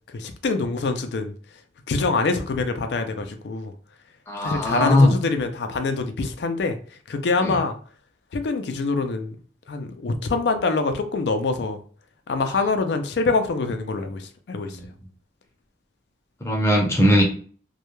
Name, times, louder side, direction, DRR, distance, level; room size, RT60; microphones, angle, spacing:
voice 1, 0.1-1.3 1.9-3.7 4.4-6.8 7.1-7.8 8.3-9.4 9.7-11.8 12.3-14.8, left 3 dB, 80° left, 7 dB, 0.4 m, -25 dB
voice 2, 4.3-5.2 7.4-7.6 14.6-14.8 16.4-17.2, left 1 dB, 15° left, 0 dB, 0.5 m, -19 dB
2.2 x 2.1 x 3.0 m, 0.43 s
head